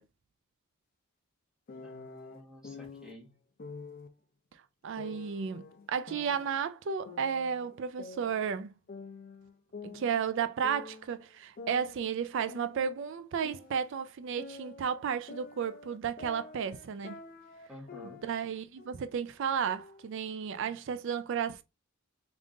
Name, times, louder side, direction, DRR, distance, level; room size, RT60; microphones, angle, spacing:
sound 1, 1.7-3.1 3.6-4.1 5.0-6.6 7.1-8.6 8.9-11.1 11.6-14.0 14.4-18.5 18.8-19.1 19.6-20.6, left 4 dB, 40° left, 0.4 m, -48 dB
voice 1, 1.8-3.4 17.7-18.2, left 1 dB, 5° right, 1.0 m, -50 dB
voice 2, 4.8-8.7 9.8-17.2 18.2-21.6, right 7 dB, 55° right, 0.3 m, -33 dB
3.6 x 2.4 x 3.7 m
head